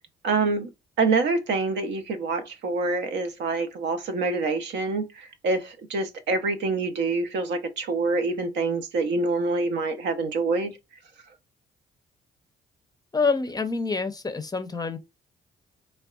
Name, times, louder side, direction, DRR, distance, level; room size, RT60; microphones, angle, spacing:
voice 1, 0.2-0.7 1.0-10.7, right 3 dB, 65° right, 0.6 m, -26 dB
voice 2, 13.1-15.0, left 4 dB, 20° left, 0.5 m, -26 dB
3.4 x 2.2 x 2.3 m
hypercardioid pair, 50°, 19 cm